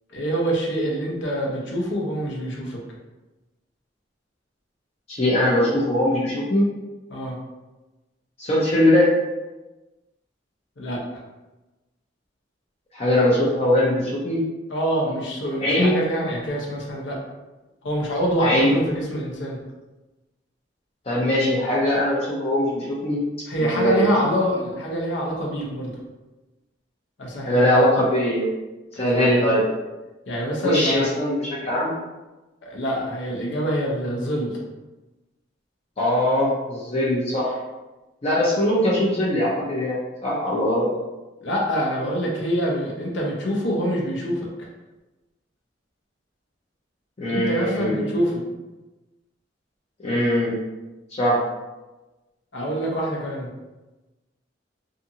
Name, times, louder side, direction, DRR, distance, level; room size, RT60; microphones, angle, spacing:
voice 1, 0.1-2.8 7.1-7.4 10.8-11.2 14.7-17.2 17.8-19.6 23.5-25.9 27.2-27.6 28.9-29.3 30.3-31.1 32.6-34.6 41.4-44.7 47.3-48.4 52.5-53.5, equal, 75° left, -2 dB, 0.7 m, -25 dB
voice 2, 5.1-6.7 8.4-9.1 12.9-14.4 15.6-16.0 18.4-18.8 21.1-23.2 23.6-24.0 27.5-28.4 29.0-29.6 30.6-31.9 36.0-37.6 38.2-40.9 47.2-48.2 50.0-50.5 51.1-51.4, left 1 dB, 35° left, -6 dB, 0.5 m, -21 dB
2.5 x 2.5 x 2.7 m, 1.1 s
head